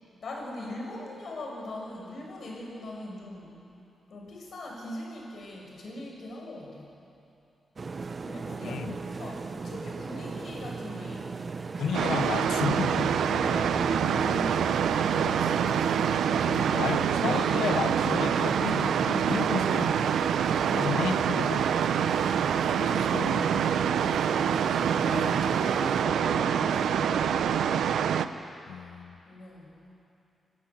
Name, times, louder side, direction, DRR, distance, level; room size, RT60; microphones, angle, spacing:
voice 1, 0.2-3.6 4.1-6.9 8.2-11.4 13.3-14.7 15.1-17.9 20.3-20.8 24.7-27.8 29.3-29.8, left 1 dB, 60° left, -1 dB, 5.5 m, -41 dB
sound 1, 7.8-26.0, right 4 dB, 40° right, 0.6 m, -37 dB
voice 2, 8.6-9.0 11.8-13.2 16.4-20.1 20.7-21.9 22.8-23.7 28.7-29.2, left 8 dB, 90° left, 12 dB, 0.7 m, -33 dB
sound 2, 11.9-28.3, right 8 dB, 90° right, 0.6 m, -26 dB
sound 3, 12.1-17.5, equal, 5° right, 2.4 m, -39 dB
26.0 x 13.5 x 8.0 m, 2.7 s
cardioid pair, 105°, 0 cm